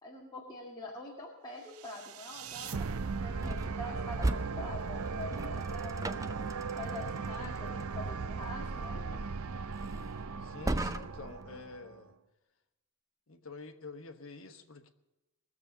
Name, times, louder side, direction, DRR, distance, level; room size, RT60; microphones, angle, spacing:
voice 1, 0.0-6.2 6.8-9.0, left 2 dB, 20° left, -3 dB, 2.0 m, -45 dB
sound 1, 1.8-12.0, right 4 dB, 75° right, 0.6 m, -38 dB
sound 2, 3.4-11.4, right 1 dB, 15° right, 0.5 m, -39 dB
voice 2, 10.4-12.1 13.3-14.9, left 3 dB, 65° left, 6 dB, 1.3 m, -48 dB
20.5 x 7.2 x 6.8 m, 1.0 s
head